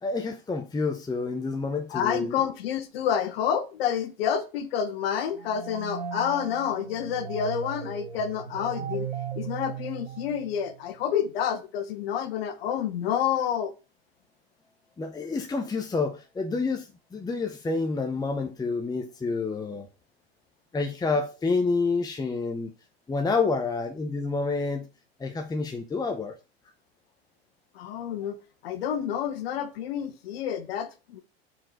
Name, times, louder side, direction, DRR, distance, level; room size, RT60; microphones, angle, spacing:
voice 1, 0.0-2.4 15.0-19.9 20.7-22.7 23.1-24.9 25.2-26.3, left 4 dB, 10° left, 0.9 m, -28 dB
voice 2, 1.9-9.1 9.4-13.7 27.7-28.4 28.6-31.2, left 8 dB, 70° left, 1.2 m, -29 dB
sound 1, 5.3-10.8, right 6 dB, 85° right, 1.3 m, -37 dB
5.7 x 4.6 x 6.4 m
hypercardioid pair, 100°, 31 cm